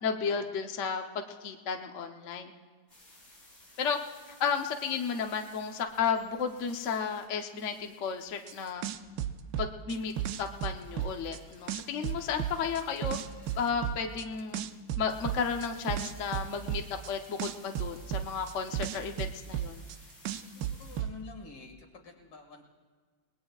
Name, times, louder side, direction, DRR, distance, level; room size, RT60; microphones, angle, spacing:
voice 1, 0.0-2.5 3.8-4.0 4.4-8.8 9.6-10.1 10.4-13.2 13.6-14.7 15.0-16.8 17.1-19.8, left 6 dB, 55° left, 4 dB, 0.9 m, -33 dB
sound 1, 2.9-21.0, left 1 dB, 30° left, 5.8 m, -57 dB
sound 2, 8.5-8.6 8.8-11.4 11.7-14.2 14.5-17.1 17.4-20.0 20.2-21.1, right 11 dB, 75° right, 1.2 m, -33 dB
voice 2, 20.3-22.6, left 4 dB, 75° left, 0 dB, 2.7 m, -48 dB
30.0 x 19.5 x 2.4 m, 1.5 s
omnidirectional pair, 2.1 m